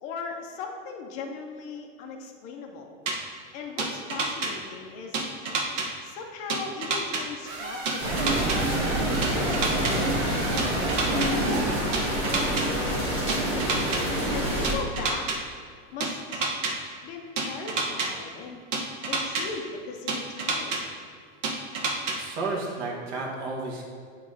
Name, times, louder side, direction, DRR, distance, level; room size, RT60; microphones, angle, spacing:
voice 1, 0.0-2.9 3.5-5.3 6.0-11.3 11.8-13.7 14.3-15.3 15.9-16.4 17.0-18.6 19.1-20.8, left 4 dB, 20° left, 3 dB, 0.4 m, -38 dB
sound 1, 3.1-3.2 3.8-4.5 5.1-5.9 6.5-7.2 7.9-8.6 9.2-9.9 10.6-11.3 11.9-12.6 13.3-14.0 14.6-15.4 16.0-16.7 17.4-18.1 18.7-19.4 20.1-20.8 21.4-22.2, right 4 dB, 80° right, 1.2 m, -27 dB
sound 2, 7.4-11.9, right 2 dB, 40° right, 0.9 m, -35 dB
sound 3, 8.0-14.7, right 1 dB, 15° right, 1.5 m, -27 dB
voice 2, 12.3-12.7 22.1-23.9, right 3 dB, 60° right, -1 dB, 1.5 m, -33 dB
8.1 x 3.0 x 4.8 m, 2.2 s
supercardioid pair, 160°, 36 cm